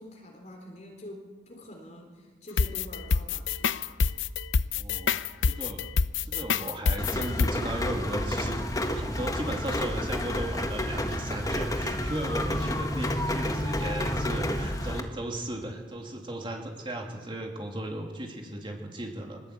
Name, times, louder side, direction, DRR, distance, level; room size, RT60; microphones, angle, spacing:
voice 1, 0.0-4.0, left 1 dB, 35° left, 1 dB, 3.6 m, -46 dB
sound 1, 2.6-7.5, left 5 dB, 85° left, 0.7 m, -26 dB
voice 2, 4.7-5.2 5.4-5.8 6.2-19.4, right 1 dB, 25° right, 1 dB, 2.8 m, -36 dB
Rain, 7.0-15.0, left 1 dB, 20° left, 1.4 m, -30 dB
23.0 x 19.5 x 8.4 m, 1.5 s
head